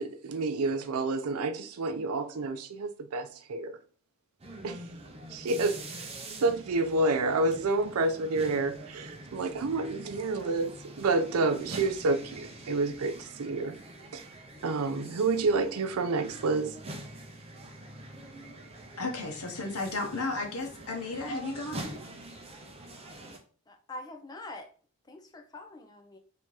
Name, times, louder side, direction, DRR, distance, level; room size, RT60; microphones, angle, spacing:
voice 1, 0.0-3.8 4.6-4.8 5.3-6.1 6.4-13.8 14.1-14.2 14.6-16.8, right 3 dB, 75° right, 0.5 m, -29 dB
sound 1, 4.4-23.4, right 1 dB, 25° right, 0.7 m, -45 dB
voice 2, 19.0-21.8, left 3 dB, 80° left, 1.1 m, -34 dB
voice 3, 23.7-24.7 25.1-26.2, left 2 dB, 15° left, 0.6 m, -44 dB
3.4 x 2.9 x 4.6 m
head